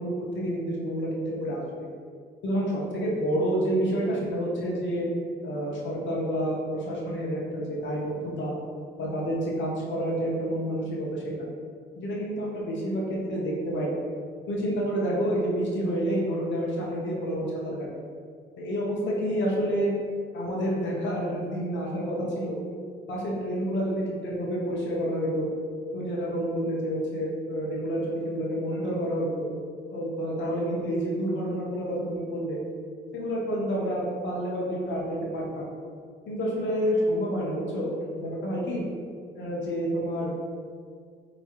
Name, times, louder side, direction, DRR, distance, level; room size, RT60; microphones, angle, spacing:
voice 1, 0.0-1.6 2.4-5.0 5.4-8.5 9.0-11.3 12.0-14.0 14.5-17.9 18.6-19.9 20.3-22.6 23.1-25.5 25.9-29.5 29.9-32.6 33.1-35.6 36.3-37.9 38.1-38.8 39.3-40.3, equal, 70° left, -3 dB, 1.0 m, -29 dB
4.6 x 3.0 x 2.9 m, 2.1 s
cardioid pair, 90°, 20 cm